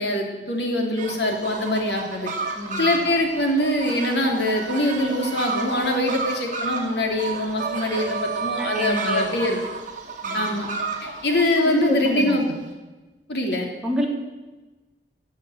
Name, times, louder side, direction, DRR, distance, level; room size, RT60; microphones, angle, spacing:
voice 1, 0.0-2.3 2.8-9.6 10.3-10.7 11.0-12.5 13.3-13.6, left 1 dB, 70° left, 2 dB, 3.2 m, -23 dB
sound 1, 1.0-12.4, right 4 dB, 50° right, 2.6 m, -31 dB
voice 2, 2.5-2.9 8.6-9.3 10.2-10.4 11.6-12.5 13.8-14.1, left 1 dB, 5° right, -2 dB, 3.2 m, -28 dB
16.0 x 8.1 x 9.4 m, 1.2 s
head